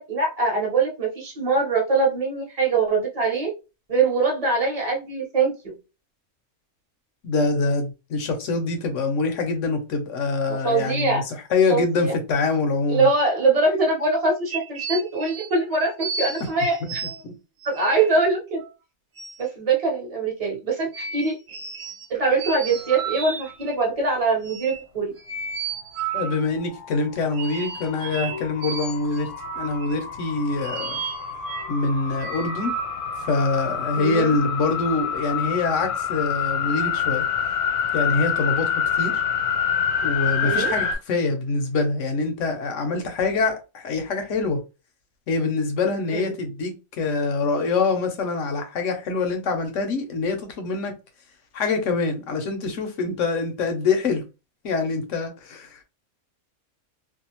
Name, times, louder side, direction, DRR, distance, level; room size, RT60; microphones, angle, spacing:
voice 1, 0.0-3.5 3.9-5.7 10.5-11.2 11.7-12.1 12.9-17.0 17.6-18.6 19.4-21.4 22.1-25.1 34.0-34.3 40.4-40.8 46.1-46.3, right 3 dB, 30° right, 0.9 m, -23 dB
voice 2, 7.2-13.1 16.8-16.9 17.2-17.3 26.1-29.3 29.6-31.0 31.7-32.7 33.3-37.3 37.9-39.2 40.0-44.6 45.3-50.9 51.5-54.2 54.6-55.8, left 3 dB, 65° left, 0.9 m, -25 dB
sound 1, 14.4-17.2 17.6-18.1 18.6-18.7 19.2-19.4 20.9-22.1 22.4-23.8 24.4-24.8 25.2-26.4 27.3-29.9 30.6-31.8 32.2-32.9, right 6 dB, 65° right, 1.0 m, -33 dB
sound 2, 26.5-40.9, left 7 dB, 80° left, 1.2 m, -27 dB
2.6 x 2.3 x 2.8 m
omnidirectional pair, 1.6 m